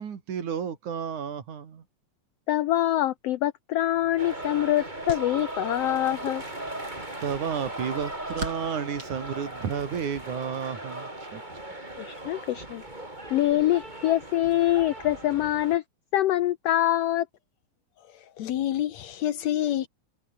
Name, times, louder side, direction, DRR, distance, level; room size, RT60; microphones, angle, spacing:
voice 1, 0.0-1.8 7.2-11.6, right 7 dB, 65° right, 4.0 m, -32 dB
voice 2, 2.5-6.4 12.0-12.8 13.3-15.8 16.1-17.3, left 13 dB, 80° left, 1.4 m, -25 dB
sound 1, 3.9-10.1, right 3 dB, 40° right, 6.1 m, -44 dB
sound 2, 4.2-15.8, right 1 dB, 15° right, 4.6 m, -38 dB
voice 3, 18.1-19.9, left 12 dB, 65° left, 2.1 m, -28 dB
omnidirectional pair, 3.7 m